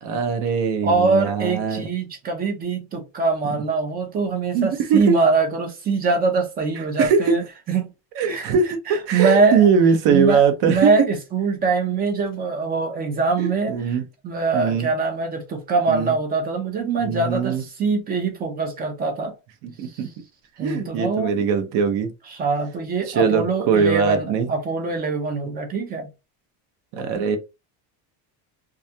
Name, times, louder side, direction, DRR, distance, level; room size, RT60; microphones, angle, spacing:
voice 1, 0.0-1.9 4.5-5.1 7.0-7.4 8.2-10.9 13.4-14.0 14.5-14.9 15.9-16.1 17.0-17.6 19.6-20.1 20.6-22.1 23.1-24.5 26.9-27.4, right 6 dB, 55° right, 0.7 m, -21 dB
voice 2, 0.8-7.9 8.2-8.5 8.9-9.7 10.1-14.0 14.2-19.3 19.8-20.0 20.6-21.3 22.3-26.1, right 4 dB, 20° right, 0.3 m, -23 dB
2.3 x 2.2 x 2.7 m
cardioid pair, 150°, 48 cm